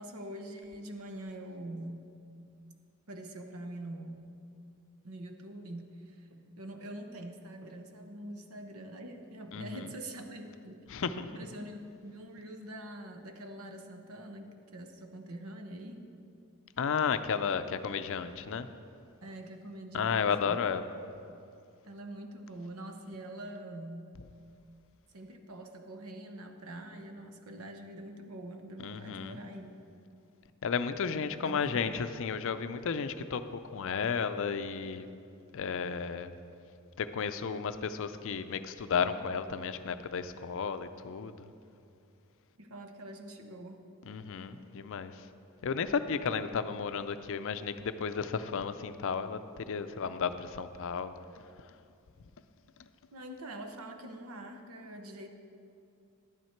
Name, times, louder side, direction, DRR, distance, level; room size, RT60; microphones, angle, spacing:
voice 1, 0.0-2.0 3.1-4.3 5.0-11.0 11.3-16.1 19.2-20.6 21.8-24.1 25.1-29.8 31.4-32.0 42.6-43.8 53.1-55.3, right 1 dB, 75° right, 5 dB, 0.9 m, -44 dB
voice 2, 9.5-9.8 10.9-11.4 16.8-18.7 19.9-20.9 28.8-29.4 30.6-33.4 33.7-35.1 35.5-36.3 37.0-41.5 44.1-45.1 45.6-49.4 49.7-51.1, left 6 dB, 60° left, 10 dB, 0.5 m, -33 dB
11.0 x 9.4 x 4.5 m, 2.5 s
head